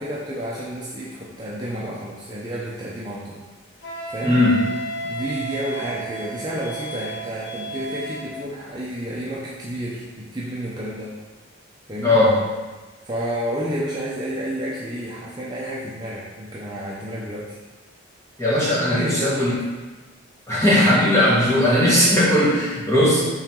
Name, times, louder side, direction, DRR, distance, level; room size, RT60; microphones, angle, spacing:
voice 1, 0.0-3.4 3.8-4.4 5.0-11.2 11.9-12.2 13.0-17.5 18.9-19.5, equal, 20° right, -7 dB, 0.8 m, -30 dB
Wind instrument woodwind instrument, 3.8-8.4, right 2 dB, 60° left, 1.1 m, -33 dB
voice 2, 4.2-4.6 12.0-12.4 18.4-19.6 20.5-23.2, left 1 dB, 15° left, -8 dB, 1.6 m, -18 dB
5.6 x 3.9 x 4.6 m, 1.2 s
head